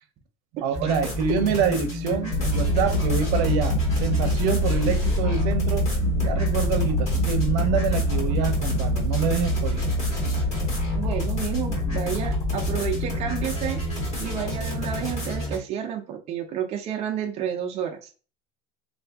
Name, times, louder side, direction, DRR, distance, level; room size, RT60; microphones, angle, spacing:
voice 1, 0.6-5.9 6.2-9.8, right 7 dB, 85° right, 0.6 m, -26 dB
sound 1, 0.7-15.6, left 1 dB, 35° left, 1.5 m, -31 dB
sound 2, 2.3-15.5, left 1 dB, 70° left, 0.7 m, -26 dB
voice 2, 10.9-13.8 14.2-18.1, right 9 dB, 30° right, 0.5 m, -30 dB
2.7 x 2.5 x 3.4 m
cardioid pair, 170°, 20 cm